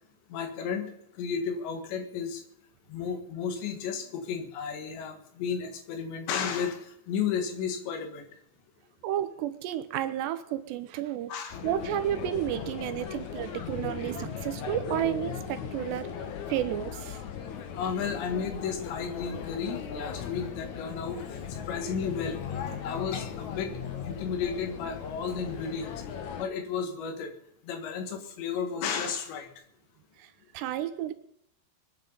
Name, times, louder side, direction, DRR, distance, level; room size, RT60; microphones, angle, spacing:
voice 1, 0.3-2.4 2.9-8.2 11.3-11.6 17.7-21.2 21.5-22.4 22.8-23.7 24.0-26.0 26.4-27.3 27.6-29.5, left 6 dB, 80° left, 6 dB, 4.0 m, -33 dB
voice 2, 9.0-11.3 11.6-16.1 16.5-17.2 30.2-31.1, right 12 dB, 80° right, 11 dB, 3.0 m, -32 dB
sound 1, 11.5-26.5, left 7 dB, 60° left, 2.1 m, -38 dB
22.5 x 9.8 x 5.5 m, 0.72 s
omnidirectional pair, 5.1 m